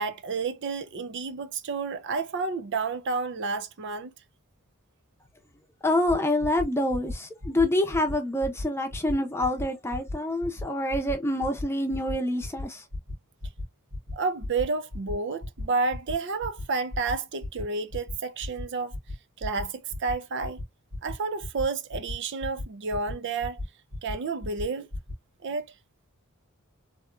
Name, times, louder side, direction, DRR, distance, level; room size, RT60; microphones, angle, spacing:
voice 1, 0.0-4.1 14.1-18.9 19.4-20.6 21.0-23.6 24.0-24.9 25.4-25.7, right 4 dB, 55° right, 0.5 m, -30 dB
voice 2, 5.8-12.8, left 1 dB, 10° left, 0.7 m, -26 dB
sound 1, 6.1-6.2 6.4-6.6 6.9-7.1 7.4-7.6 7.9-8.1 8.4-8.6 8.9-9.1 9.4-9.6 9.9-10.1 10.4-10.6 10.9-11.1 11.4-11.6 11.9-12.1 12.4-12.6 12.9-13.1 13.4-13.6 13.9-14.1 14.4-14.6 14.9-15.1 15.4-15.6 15.9-16.1 16.4-16.6 16.9-17.1 17.4-17.6 17.9-18.1 18.4-18.6 18.9-19.1 19.4-19.6 19.9-20.1 20.4-20.6 20.9-21.1 21.4-21.6 21.9-22.1 22.4-22.6 22.9-23.1 23.4-23.6 23.9-24.1 24.4-24.6 24.9-25.1, left 2 dB, 80° right, 1.8 m, -35 dB
3.5 x 2.8 x 2.5 m
head